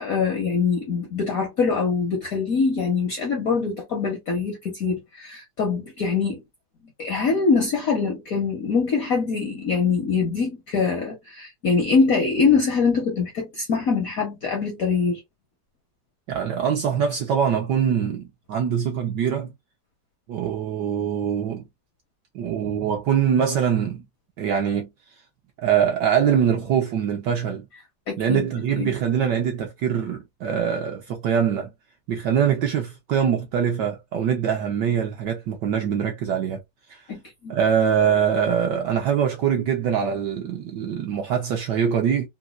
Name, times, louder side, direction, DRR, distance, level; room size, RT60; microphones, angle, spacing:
voice 1, 0.0-6.4 7.0-15.2 28.1-28.4 28.8-28.9 37.1-37.6, left 5 dB, 65° left, 0.9 m, -23 dB
voice 2, 16.3-19.5 20.3-21.6 22.3-24.0 24.4-24.9 25.6-27.7 28.2-31.7 32.1-36.6 36.9-37.0 37.5-42.3, right 8 dB, 70° right, 1.0 m, -23 dB
4.0 x 2.2 x 2.3 m
omnidirectional pair, 2.4 m